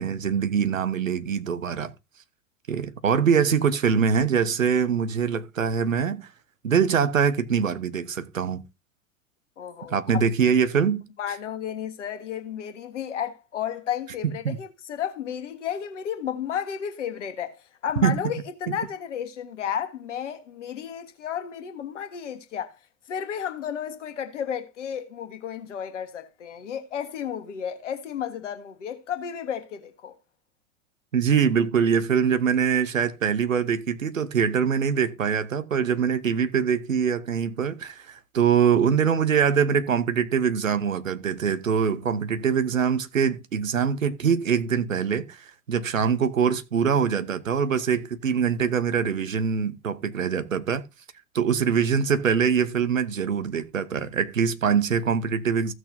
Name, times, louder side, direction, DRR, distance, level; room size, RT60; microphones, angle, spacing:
voice 1, 0.0-1.9 2.7-6.3 6.6-8.6 9.9-11.0 14.4-14.6 18.0-18.2 18.7-18.8 31.1-50.8 51.3-55.7, right 7 dB, 75° right, 1.0 m, -23 dB
voice 2, 9.6-10.0 11.2-17.6 17.8-22.8 23.1-30.2, left 9 dB, 65° left, 1.5 m, -32 dB
15.5 x 6.2 x 2.7 m
figure-of-eight pair, 90°, 40 cm